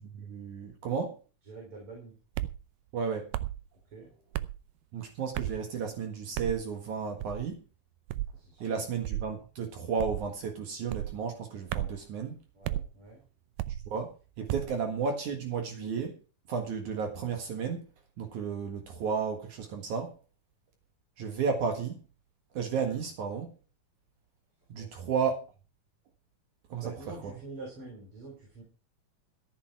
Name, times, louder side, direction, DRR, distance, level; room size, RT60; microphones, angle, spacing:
voice 1, 0.1-1.2 2.9-3.3 4.9-7.6 8.6-12.4 13.9-16.2 16.5-17.8 18.2-20.1 21.2-22.0 22.5-23.5 24.7-25.4 26.7-26.9 27.2-27.3, right 6 dB, 65° right, 3.0 m, -33 dB
voice 2, 1.4-2.1 3.9-4.1 8.3-8.8 12.5-13.2 14.6-14.8 24.7-24.9 26.8-28.6, right 3 dB, 40° right, 5.1 m, -46 dB
sound 1, 2.4-2.6 3.3-3.6 4.3-4.6 5.3-5.6 6.4-6.6 7.2-7.5 8.1-8.4 9.0-9.3 10.0-10.3 10.9-11.2 11.7-12.0 12.6-12.9 13.6-13.9 14.5-14.8, right 14 dB, 85° right, 2.4 m, -33 dB
14.0 x 10.5 x 4.7 m
omnidirectional pair, 3.8 m